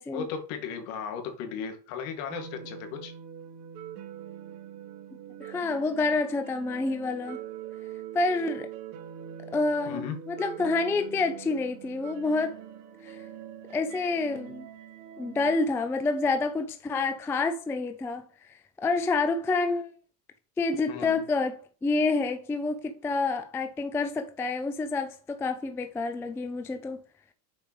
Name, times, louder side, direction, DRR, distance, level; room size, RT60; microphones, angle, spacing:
voice 1, 0.1-3.1 9.9-10.2 20.9-21.2, left 7 dB, 60° left, 2.2 m, -36 dB
sound 1, 2.3-15.5, right 9 dB, 60° right, 1.3 m, -43 dB
voice 2, 5.4-7.4 8.1-8.7 9.5-12.6 13.0-13.2 13.7-14.7 15.2-18.2 18.8-19.9 20.6-27.0, left 3 dB, 5° left, 0.3 m, -28 dB
6.9 x 5.1 x 3.1 m
supercardioid pair, 115°, 49 cm